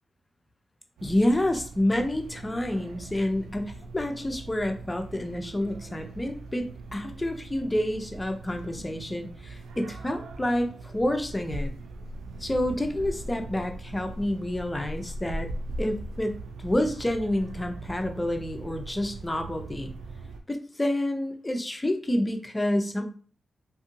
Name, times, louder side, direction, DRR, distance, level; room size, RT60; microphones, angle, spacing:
voice 1, 1.0-11.7 12.4-15.5 15.8-19.9 20.5-23.0, left 1 dB, 20° left, 5 dB, 0.6 m, -28 dB
sound 1, 1.0-20.4, right 2 dB, 85° right, 0.3 m, -40 dB
2.6 x 2.6 x 2.6 m, 0.42 s
supercardioid pair, 45°, 0 cm